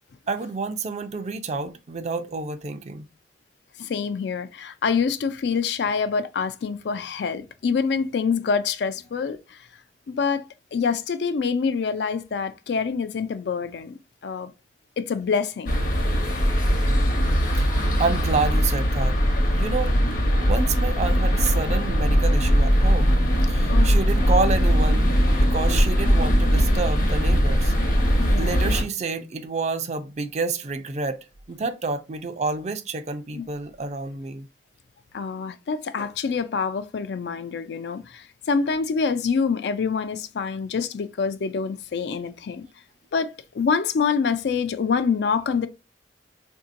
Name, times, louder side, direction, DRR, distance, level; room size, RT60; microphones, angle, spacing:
voice 1, 0.3-3.1 17.6-17.7 18.0-19.2 19.5-19.9 20.4-23.1 23.5-27.7 28.0-31.2 31.5-34.5, right 4 dB, 40° right, 0.4 m, -29 dB
voice 2, 3.8-9.6 10.1-14.0 14.2-14.5 15.0-15.7 23.7-24.0 28.2-28.6 33.3-33.5 35.1-42.6 43.1-45.7, left 5 dB, 70° left, 0.4 m, -26 dB
sound 1, 15.7-28.8, equal, 50° left, 0.8 m, -20 dB
3.6 x 2.7 x 2.5 m
head